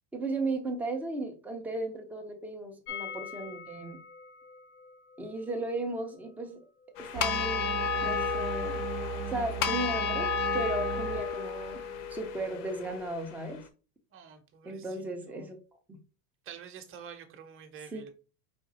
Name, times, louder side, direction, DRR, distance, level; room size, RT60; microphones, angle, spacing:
voice 1, 0.1-4.0 5.2-6.7 7.0-8.8 9.3-11.8 12.1-13.6 14.6-15.6 15.9-16.0 17.9-18.0, right 2 dB, 5° right, 0.3 m, -35 dB
sound 1, 2.9-8.6 8.9-9.0 9.2-9.3, left 7 dB, 90° left, 1.2 m, -46 dB
sound 2, 7.0-13.3, left 6 dB, 70° left, 0.8 m, -32 dB
sound 3, 7.1-11.2, right 8 dB, 75° right, 0.8 m, -37 dB
voice 2, 14.1-15.6 16.4-18.1, right 7 dB, 25° right, 0.7 m, -48 dB
5.0 x 2.3 x 4.0 m
supercardioid pair, 145°, 46 cm